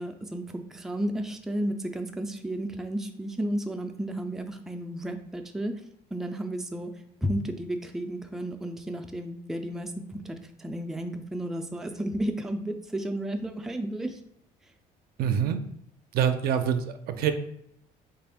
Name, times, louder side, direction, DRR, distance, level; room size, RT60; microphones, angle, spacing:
voice 1, 0.0-5.7 6.1-6.9 7.2-14.2, right 1 dB, ahead, 5 dB, 0.3 m, -32 dB
voice 2, 15.2-15.6 16.1-17.3, right 8 dB, 65° right, 8 dB, 0.4 m, -25 dB
3.4 x 2.4 x 3.5 m, 0.75 s
cardioid pair, 110°, 17 cm